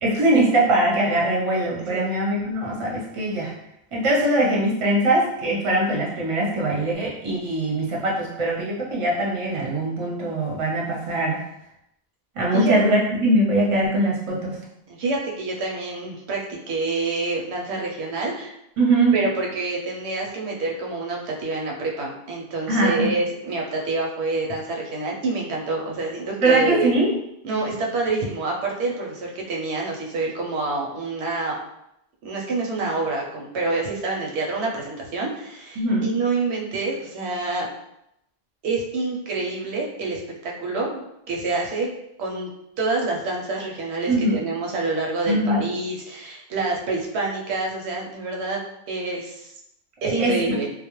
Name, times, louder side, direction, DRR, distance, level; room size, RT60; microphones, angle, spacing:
voice 1, 0.0-3.5 3.9-11.4 12.3-14.6 18.8-19.1 22.7-23.1 26.4-27.1 35.8-36.1 44.1-44.3 45.3-45.6 50.0-50.5, right 1 dB, 40° right, -3 dB, 0.6 m, -21 dB
voice 2, 14.9-18.5 19.1-26.9 27.4-31.6 32.2-37.7 38.6-41.0 41.3-41.9 42.2-42.5 42.8-48.6 48.9-49.5 50.0-50.7, right 3 dB, 85° right, -1 dB, 0.9 m, -27 dB
2.3 x 2.0 x 2.9 m, 0.81 s
omnidirectional pair, 1.1 m